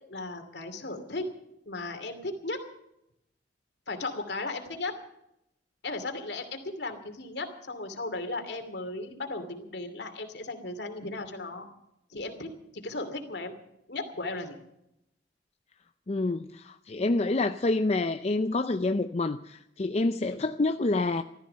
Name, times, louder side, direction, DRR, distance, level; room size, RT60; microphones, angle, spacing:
voice 1, 0.1-1.3 1.7-2.6 3.9-4.9 5.8-11.7 12.1-12.5 12.8-13.5 13.9-14.6 20.3-20.4, left 2 dB, 65° left, 6 dB, 2.6 m, -36 dB
voice 2, 16.1-21.2, left 2 dB, 35° left, 8 dB, 0.5 m, -27 dB
15.5 x 13.5 x 6.8 m, 0.82 s
head